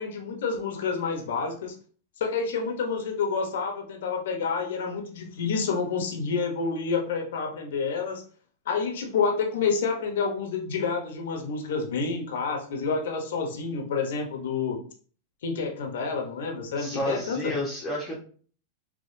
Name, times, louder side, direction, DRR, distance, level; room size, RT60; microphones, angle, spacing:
voice 1, 0.0-1.7 2.2-8.2 8.7-14.8 15.4-17.5, left 5 dB, 80° left, 3 dB, 0.8 m, -29 dB
voice 2, 16.8-18.1, left 1 dB, 20° left, -5 dB, 1.0 m, -30 dB
3.6 x 3.0 x 2.6 m, 0.43 s
supercardioid pair, 135°, 0 cm